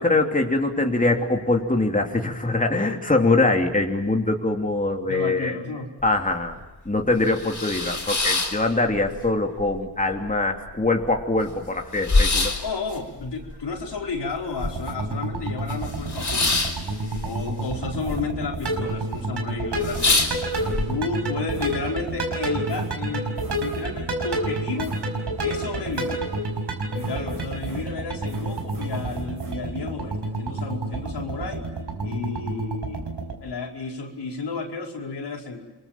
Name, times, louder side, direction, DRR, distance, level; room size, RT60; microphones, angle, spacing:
voice 1, 0.0-5.6 6.0-6.6 6.8-12.5, left 2 dB, 20° left, 2 dB, 3.0 m, -23 dB
voice 2, 5.0-5.9 12.6-16.7 17.2-20.6 20.9-24.9 25.4-26.3 26.9-31.7 32.0-33.0 33.4-35.6, left 4 dB, 80° left, 0 dB, 5.0 m, -32 dB
sound 1, 6.0-6.1 6.5-6.6 7.1-9.3 9.6-10.3 10.7-10.8 10.9-15.1 15.4-18.2 18.4-19.0 19.4-19.5 19.8-20.8, left 3 dB, 45° left, 5.1 m, -25 dB
sound 2, 14.6-33.3, right 2 dB, 75° right, 5.4 m, -29 dB
sound 3, 17.8-19.3 20.3-22.2 22.7-24.1 24.8-25.6 25.9-26.6 27.0-29.5, right 3 dB, 55° right, 5.2 m, -42 dB
28.0 x 22.5 x 7.5 m, 1.1 s
cardioid pair, 65°, 41 cm